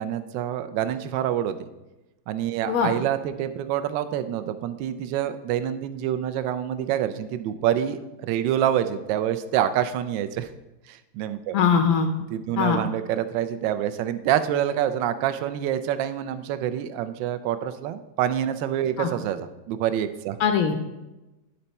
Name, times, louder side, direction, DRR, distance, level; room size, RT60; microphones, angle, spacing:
voice 1, 0.0-1.7 2.3-10.5 10.9-11.5 12.3-20.4, right 10 dB, 75° right, 10 dB, 1.2 m, -26 dB
voice 2, 11.5-12.1 12.6-12.8 19.0-19.1 20.4-20.8, left 7 dB, 75° left, 6 dB, 0.8 m, -21 dB
11.0 x 4.4 x 4.1 m, 1.0 s
omnidirectional pair, 2.3 m